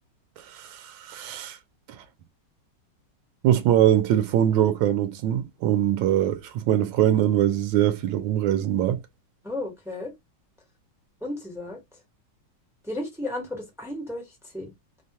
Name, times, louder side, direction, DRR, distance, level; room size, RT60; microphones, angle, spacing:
voice 1, 0.5-1.6 3.4-9.0, right 11 dB, 75° right, 1.3 m, -22 dB
voice 2, 9.4-10.1 11.2-11.8 12.8-14.7, left 1 dB, 5° right, 0.4 m, -34 dB
3.4 x 2.2 x 2.7 m
omnidirectional pair, 2.2 m